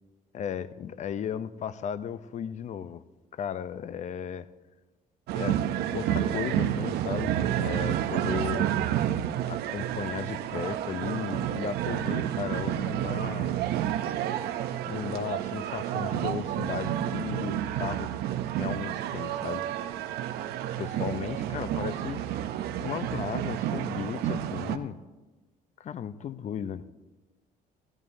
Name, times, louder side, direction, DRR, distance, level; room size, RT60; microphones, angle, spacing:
voice 1, 0.3-3.0 3.3-4.5 5.3-8.7 9.5-13.6 14.9-18.1 18.6-19.7 20.8-22.3 22.7-25.0 25.8-26.9, left 8 dB, 45° left, 15 dB, 0.6 m, -35 dB
sound 1, 5.3-24.8, right 11 dB, 80° right, 0.7 m, -30 dB
15.0 x 14.0 x 2.7 m, 1.2 s
cardioid pair, 90°, 16 cm